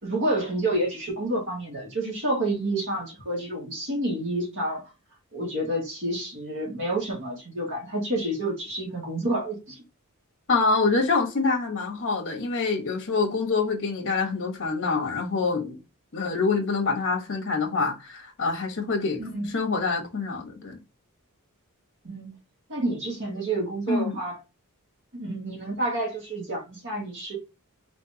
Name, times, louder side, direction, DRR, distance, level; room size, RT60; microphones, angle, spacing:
voice 1, 0.0-4.9 5.3-9.8 19.2-19.5 22.0-22.3 22.7-24.4 25.1-27.4, right 1 dB, 60° right, 1.9 m, -29 dB
voice 2, 10.5-15.8 16.1-20.8 23.9-24.2, left 4 dB, 60° left, 1.3 m, -26 dB
4.2 x 3.4 x 2.9 m
head